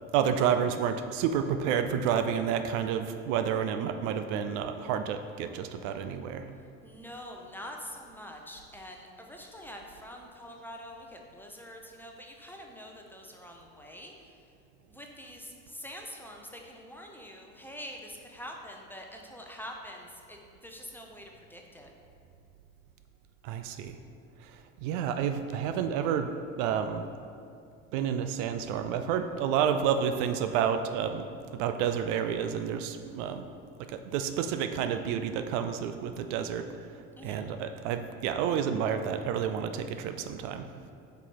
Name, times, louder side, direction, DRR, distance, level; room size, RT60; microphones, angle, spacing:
voice 1, 0.1-6.4 23.4-24.0 24.4-24.5 24.8-27.1 27.9-31.3 31.6-33.4 33.9-36.7 37.2-40.7, right 8 dB, 65° right, 8 dB, 0.5 m, -30 dB
voice 2, 6.8-14.3 14.9-21.9 37.2-37.4, equal, 5° left, 1 dB, 0.7 m, -45 dB
5.2 x 4.4 x 4.3 m, 2.4 s
hypercardioid pair, 70°, 39 cm